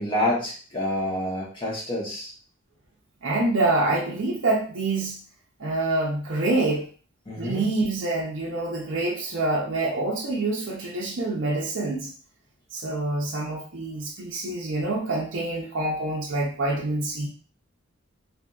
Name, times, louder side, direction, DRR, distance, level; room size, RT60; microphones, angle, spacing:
voice 1, 0.0-2.3 7.3-7.6, left 1 dB, 25° left, -5 dB, 1.0 m, -28 dB
voice 2, 3.2-5.2 5.6-6.9 7.3-12.1 12.7-17.3, right 2 dB, 60° right, -3 dB, 0.6 m, -26 dB
2.6 x 2.6 x 2.3 m, 0.40 s
head